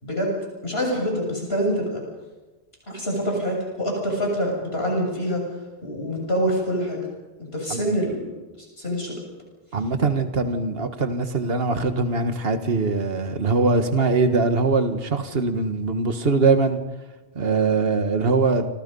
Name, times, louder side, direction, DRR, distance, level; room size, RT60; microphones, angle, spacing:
voice 1, 0.0-0.3 0.6-2.0 2.9-5.4 5.8-7.0 7.5-8.3 8.8-9.2, equal, 75° left, 0 dB, 7.5 m, -25 dB
voice 2, 9.7-16.8 17.4-18.7, right 3 dB, 65° right, 7 dB, 1.8 m, -22 dB
28.0 x 26.0 x 5.5 m, 1.2 s
omnidirectional pair, 1.1 m